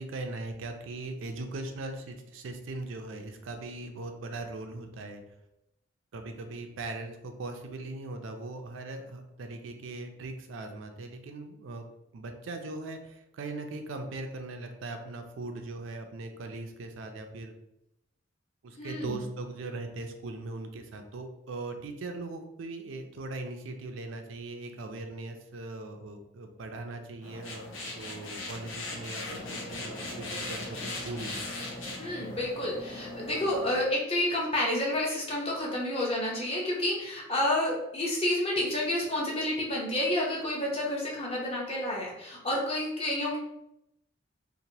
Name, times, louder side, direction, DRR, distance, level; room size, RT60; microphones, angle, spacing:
voice 1, 0.0-5.2 6.1-11.9 12.1-17.5 18.6-31.4, right 2 dB, 80° right, 5 dB, 0.4 m, -40 dB
voice 2, 18.8-19.2 32.0-43.4, left 1 dB, 30° left, -3 dB, 0.7 m, -30 dB
sound 1, 27.2-33.8, left 2 dB, 85° left, 0.7 m, -39 dB
2.9 x 2.1 x 2.7 m, 0.84 s
head